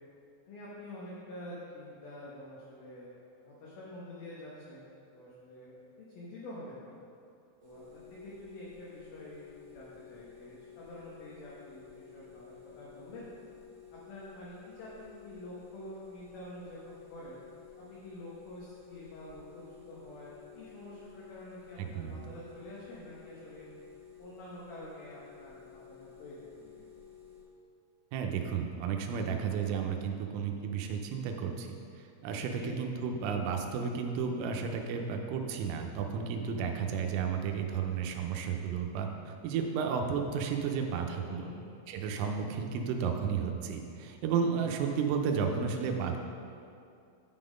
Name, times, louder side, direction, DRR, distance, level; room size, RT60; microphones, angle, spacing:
voice 1, 0.4-7.0 7.6-13.3 13.9-17.4 17.8-23.7 24.2-26.8 32.5-32.8 41.3-41.6, left 1 dB, 75° left, -7 dB, 2.2 m, -47 dB
sound 1, 7.6-27.4, left 9 dB, 65° right, 2.0 m, -53 dB
voice 2, 21.8-22.2 28.1-31.7 32.0-41.5 41.9-46.2, right 6 dB, 80° right, 3 dB, 3.1 m, -33 dB
11.5 x 3.9 x 5.1 m, 2.5 s
omnidirectional pair, 5.9 m